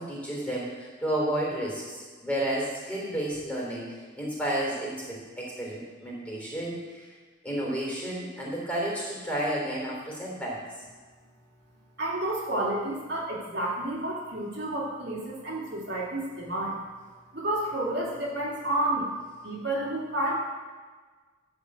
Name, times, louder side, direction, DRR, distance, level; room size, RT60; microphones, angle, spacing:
voice 1, 0.0-7.1 7.4-10.6, right 1 dB, 5° left, -4 dB, 3.4 m, -31 dB
voice 2, 12.0-16.8 17.3-19.1 19.4-20.4, right 1 dB, 60° right, -5 dB, 2.9 m, -30 dB
13.5 x 4.8 x 7.9 m, 1.4 s
head